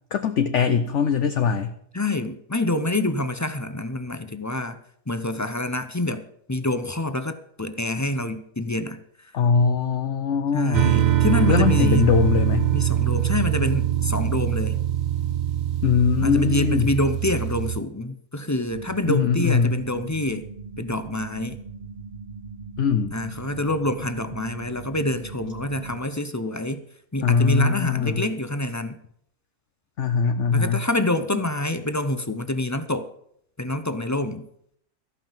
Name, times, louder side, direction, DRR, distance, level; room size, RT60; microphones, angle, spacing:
voice 1, 0.1-1.7 9.3-11.0 11.5-12.7 15.8-16.9 19.1-19.8 22.8-23.1 27.2-28.3 30.0-30.9 31.3-31.4, left 6 dB, 60° left, 8 dB, 1.0 m, -21 dB
voice 2, 1.9-4.8 5.1-6.2 6.5-9.3 10.5-12.1 12.7-14.8 16.2-20.5 20.8-21.6 23.1-26.8 27.1-29.0 30.5-33.1 33.6-34.5, left 1 dB, 20° left, 10 dB, 0.4 m, -27 dB
sound 1, 10.7-17.8, right 11 dB, 65° right, 0.4 m, -23 dB
sound 2, 18.7-26.0, right 5 dB, 35° right, 0.8 m, -40 dB
14.5 x 5.7 x 9.0 m, 0.68 s
omnidirectional pair, 1.6 m